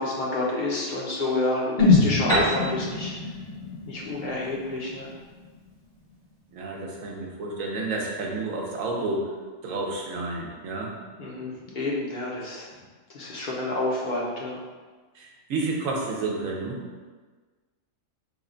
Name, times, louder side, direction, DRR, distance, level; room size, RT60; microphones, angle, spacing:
voice 1, 0.0-3.1 3.9-5.1 11.2-12.7 13.1-14.6, left 2 dB, 50° left, -4 dB, 0.6 m, -29 dB
sound 1, 1.8-5.8 6.1-6.2, left 3 dB, 80° left, 1.6 m, -25 dB
Piano, 2.3-5.9, right 1 dB, 5° left, 0.7 m, -31 dB
voice 2, 6.5-9.3 9.6-10.9 15.1-16.8, right 3 dB, 80° right, -1 dB, 1.0 m, -30 dB
3.3 x 2.2 x 3.7 m, 1.4 s
omnidirectional pair, 1.4 m